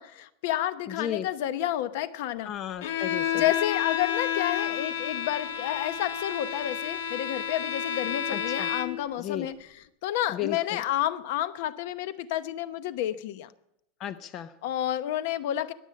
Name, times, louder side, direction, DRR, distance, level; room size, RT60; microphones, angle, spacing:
voice 1, 0.0-2.5 3.3-13.5 14.6-15.7, left 12 dB, 60° left, 14 dB, 0.9 m, -30 dB
voice 2, 2.5-3.4 8.3-8.7 9.2-9.5 10.3-10.8 14.0-14.5, left 10 dB, 30° left, 12 dB, 0.6 m, -34 dB
Bowed string instrument, 2.8-9.1, left 9 dB, 85° left, 1.5 m, -30 dB
21.0 x 8.0 x 8.5 m, 0.81 s
supercardioid pair, 170°, 0 cm